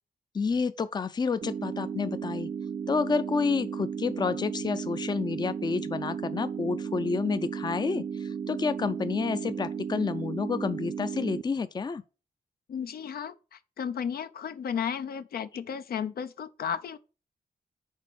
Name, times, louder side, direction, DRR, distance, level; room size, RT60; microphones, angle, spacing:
voice 1, 0.3-2.5 2.9-12.0, left 5 dB, 25° left, 0.4 m, -29 dB
sound 1, 1.4-11.4, right 7 dB, 40° right, 0.4 m, -35 dB
voice 2, 12.7-17.0, left 7 dB, 80° left, 0.6 m, -34 dB
6.4 x 4.1 x 6.2 m
wide cardioid pair, 115°, 16 cm